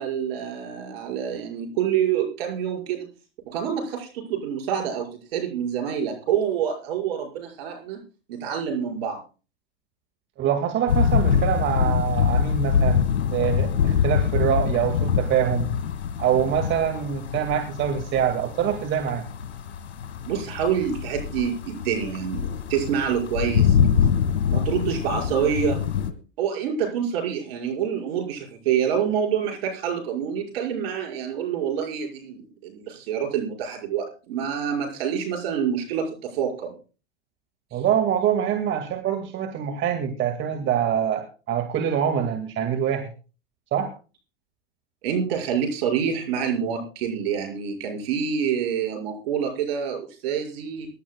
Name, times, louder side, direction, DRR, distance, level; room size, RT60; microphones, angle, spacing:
voice 1, 0.0-3.1 3.5-8.0 8.3-9.2 20.3-22.4 22.7-23.8 24.5-25.8 26.4-36.7 45.0-50.9, right 8 dB, 65° right, 1 dB, 5.7 m, -27 dB
voice 2, 10.4-13.0 13.3-15.7 16.2-19.2 37.7-43.1 43.7-43.9, right 9 dB, 35° right, 5 dB, 2.1 m, -24 dB
sound 1, 10.9-26.1, left 7 dB, 80° left, 1.9 m, -24 dB
24.5 x 11.5 x 2.3 m, 0.34 s
hypercardioid pair, 100°, 32 cm